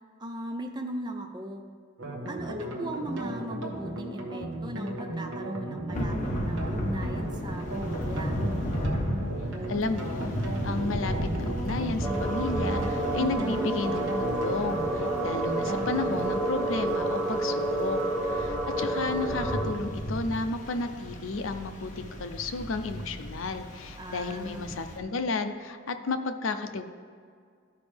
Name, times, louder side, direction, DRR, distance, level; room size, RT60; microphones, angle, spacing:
voice 1, 0.2-1.7 2.3-8.4 13.2-13.7 24.0-24.7, right 1 dB, 20° right, 4 dB, 0.5 m, -38 dB
sound 1, 2.0-16.3, right 1 dB, 75° right, 1.3 m, -36 dB
Thunder / Rain, 5.9-25.0, equal, 40° left, 1.1 m, -35 dB
voice 2, 9.7-18.0 18.3-26.8, left 3 dB, 75° left, 8 dB, 0.6 m, -32 dB
sound 2, 12.0-19.6, right 1 dB, 5° right, 1.7 m, -30 dB
13.5 x 5.1 x 3.4 m, 2.1 s
head